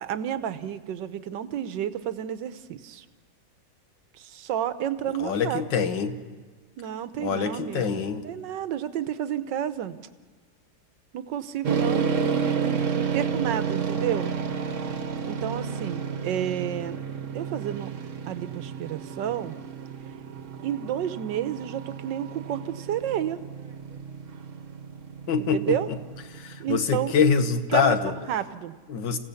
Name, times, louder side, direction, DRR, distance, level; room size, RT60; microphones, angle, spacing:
voice 1, 0.0-3.0 4.1-5.9 6.8-10.0 11.1-14.3 15.2-17.0 17.3-17.9 18.3-19.5 20.6-23.4 25.5-25.9 26.6-27.1 27.7-28.0 28.3-28.7, right 10 dB, 70° right, 12 dB, 1.5 m, -31 dB
voice 2, 5.2-6.2 7.2-8.3 25.3-26.0 26.3-28.1 28.9-29.2, left 6 dB, 70° left, 9 dB, 1.9 m, -25 dB
sound 1, 11.6-27.1, right 6 dB, 45° right, 1.4 m, -31 dB
27.5 x 16.5 x 7.0 m, 1.4 s
omnidirectional pair, 2.1 m